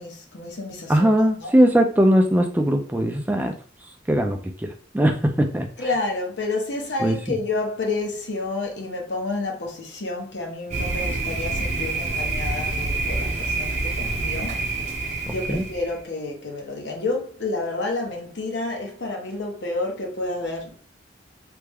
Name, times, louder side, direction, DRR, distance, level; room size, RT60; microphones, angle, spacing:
voice 1, 0.0-1.1 1.4-1.5 5.8-14.6 15.3-20.8, left 2 dB, 75° left, 0.9 m, -29 dB
voice 2, 0.9-3.6 4.1-5.7 7.0-7.4 15.3-15.6, equal, 10° right, 0.4 m, -20 dB
Thunder, 10.7-16.0, right 3 dB, 40° right, 0.7 m, -27 dB
3.3 x 2.1 x 3.4 m
head